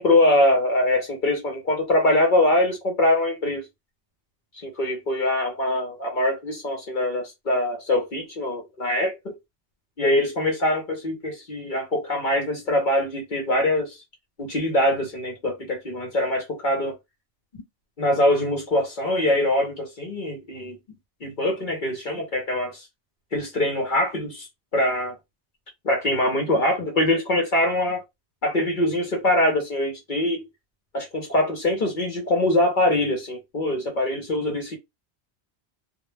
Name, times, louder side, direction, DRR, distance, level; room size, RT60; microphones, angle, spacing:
voice 1, 0.0-3.7 4.5-9.4 10.0-14.0 14.4-17.0 18.0-20.8 21.2-22.9 23.3-24.5 24.7-25.2 25.8-28.0 28.4-30.4 30.9-34.8, left 1 dB, 50° left, 0.8 m, -23 dB
2.1 x 2.1 x 3.1 m
omnidirectional pair, 1.1 m